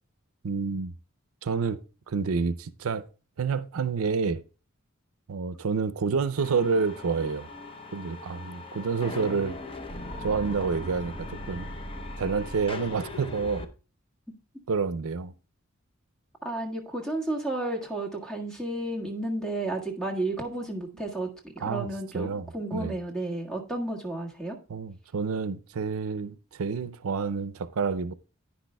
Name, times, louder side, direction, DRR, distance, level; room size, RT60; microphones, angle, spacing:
voice 1, 0.4-0.9 1.4-1.8 2.1-3.1 3.4-4.4 5.3-7.5 7.9-9.6 10.2-11.7 12.2-13.7 14.7-15.3 21.6-21.9 22.1-22.9 24.7-28.1, right 5 dB, 80° right, 0.5 m, -29 dB
sound 1, 6.4-13.6, left 2 dB, 25° left, 0.7 m, -39 dB
voice 2, 16.4-21.3 21.5-24.6, right 2 dB, 5° left, 1.6 m, -32 dB
10.0 x 10.0 x 2.2 m
head